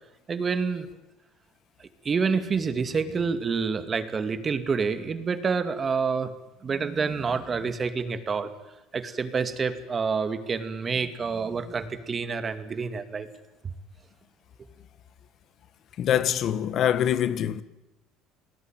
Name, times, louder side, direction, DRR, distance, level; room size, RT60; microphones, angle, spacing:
voice 1, 0.3-0.9 2.0-6.3 6.6-8.5 8.9-13.3, right 5 dB, 30° right, 2.5 m, -28 dB
voice 2, 16.0-17.6, left 10 dB, 50° left, 1.5 m, -24 dB
29.5 x 20.0 x 9.2 m
supercardioid pair, 110°, 0 cm